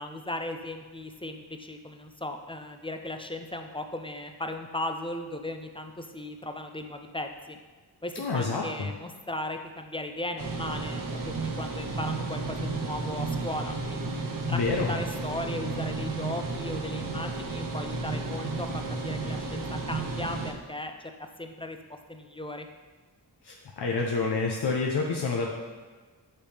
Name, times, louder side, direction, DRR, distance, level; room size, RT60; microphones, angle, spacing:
voice 1, 0.0-7.6 8.0-14.1 14.5-20.9 21.4-21.8 22.1-22.7, left 1 dB, 15° left, 5 dB, 0.3 m, -37 dB
voice 2, 8.2-8.9 14.5-14.9 23.4-25.5, left 4 dB, 65° left, -1 dB, 0.7 m, -28 dB
sound 1, 10.4-20.5, right 3 dB, 50° right, 0.7 m, -33 dB
8.7 x 3.4 x 3.3 m, 1.4 s
wide cardioid pair, 85°, 42 cm